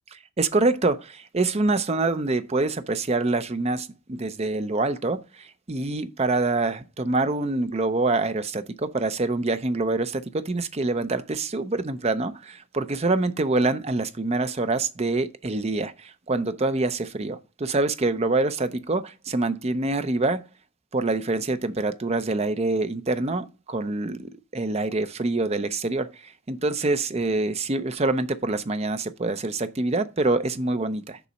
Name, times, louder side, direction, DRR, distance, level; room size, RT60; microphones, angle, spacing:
voice 1, 0.4-20.4 20.9-31.2, right 2 dB, 30° right, 0.6 m, -25 dB
6.9 x 4.1 x 6.1 m
head